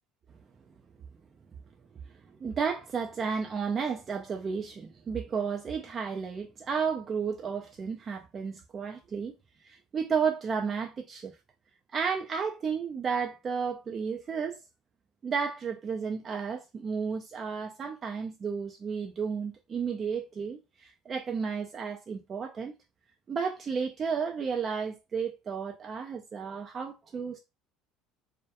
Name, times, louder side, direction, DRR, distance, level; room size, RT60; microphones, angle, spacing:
voice 1, 2.4-9.3 9.6-11.4 11.9-14.6 15.2-22.7 23.3-27.4, right 6 dB, 35° right, 0.4 m, -32 dB
2.2 x 2.1 x 2.7 m
supercardioid pair, 90°, 0 cm